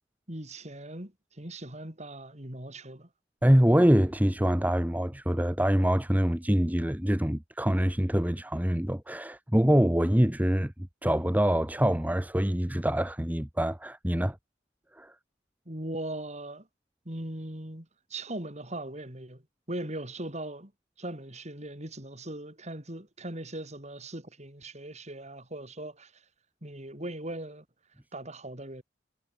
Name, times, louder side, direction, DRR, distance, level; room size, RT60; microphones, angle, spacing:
voice 1, 0.3-1.1 1.4-3.1 15.7-16.7 17.1-19.4 19.7-20.7 21.0-26.1 26.6-27.6 28.1-28.8, right 1 dB, 35° right, 5.6 m, -39 dB
voice 2, 3.4-10.7 11.0-14.4 14.9-15.1, equal, 10° right, 1.1 m, -25 dB
head